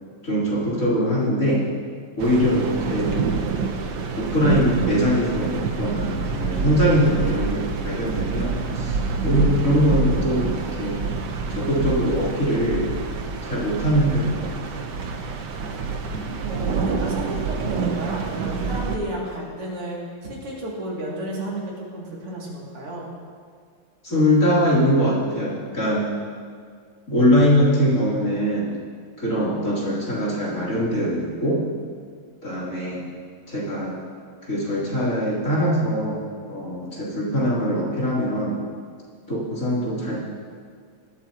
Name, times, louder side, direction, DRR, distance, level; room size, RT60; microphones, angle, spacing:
voice 1, 0.2-1.7 2.2-3.3 4.2-9.0 9.2-11.1 11.5-12.9 13.4-14.8 24.0-26.1 27.1-28.7 29.2-31.6 32.4-33.0 33.5-34.0 34.4-38.6 39.3-40.2, equal, 35° left, -8 dB, 3.7 m, -22 dB
sound 1, 2.2-19.0, right 4 dB, 60° right, 1.4 m, -27 dB
voice 2, 16.4-20.0 20.3-23.1, right 1 dB, 85° right, -5 dB, 3.5 m, -32 dB
20.0 x 13.0 x 2.9 m, 2.1 s
omnidirectional pair, 2.4 m